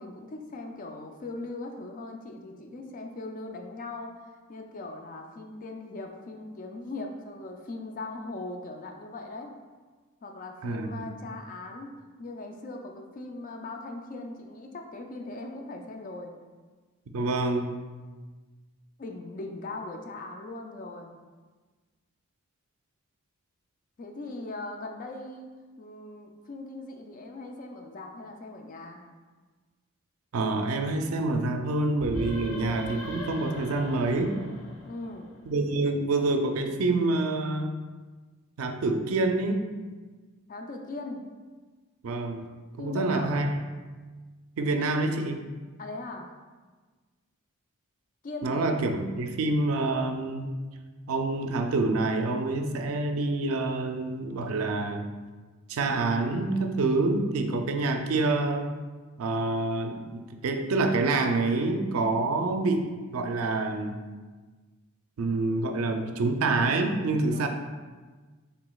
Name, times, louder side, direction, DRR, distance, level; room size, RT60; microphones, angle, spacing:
voice 1, 0.0-4.2 4.5-9.5 10.2-11.9 12.2-16.3 19.0-21.1 24.0-25.5 25.8-29.0 34.8-35.3 40.5-41.2 42.8-43.5 45.8-46.3 48.2-48.7 67.3-67.5, left 2 dB, 40° left, 3 dB, 0.4 m, -39 dB
voice 2, 10.6-11.0 17.1-17.7 30.3-34.4 35.5-37.7 38.6-39.6 42.0-42.5 42.8-43.6 44.6-45.4 48.4-50.5 51.1-55.0 55.7-58.7 59.2-64.0 65.2-67.5, right 2 dB, 75° right, 5 dB, 0.4 m, -27 dB
sound 1, 31.9-35.6, equal, 75° left, 0.6 m, -40 dB
4.9 x 3.3 x 2.3 m, 1.4 s
head